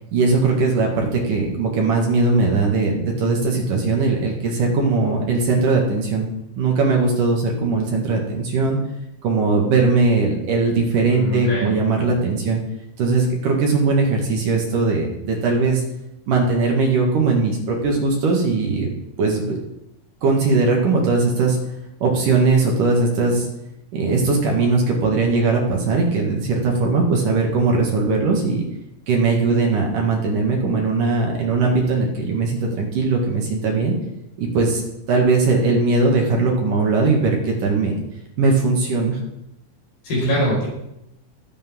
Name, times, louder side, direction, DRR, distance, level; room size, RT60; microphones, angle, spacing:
voice 1, 0.1-6.3 6.6-8.8 9.2-12.6 13.0-15.8 16.3-18.9 19.2-19.6 20.2-21.6 22.0-23.5 23.9-28.7 29.1-33.9 34.4-34.8 35.1-37.9 38.4-39.2, right 3 dB, 60° right, 0 dB, 3.3 m, -19 dB
voice 2, 11.1-11.8 40.0-40.7, equal, 60° left, -5 dB, 7.2 m, -23 dB
20.5 x 8.1 x 3.8 m, 0.85 s
omnidirectional pair, 4.5 m